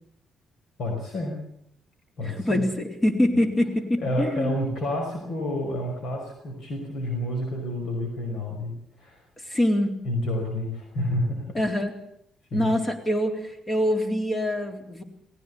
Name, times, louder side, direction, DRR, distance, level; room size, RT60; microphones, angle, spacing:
voice 1, 0.8-1.4 2.2-2.6 4.0-8.7 9.0-9.6 10.0-11.6 12.5-12.7, left 1 dB, 65° left, 2 dB, 5.3 m, -29 dB
voice 2, 2.2-4.6 9.5-9.9 11.5-11.9 12.5-15.0, left 1 dB, 30° left, 5 dB, 3.9 m, -24 dB
19.5 x 16.5 x 8.4 m, 0.71 s
cardioid pair, 90°, 0 cm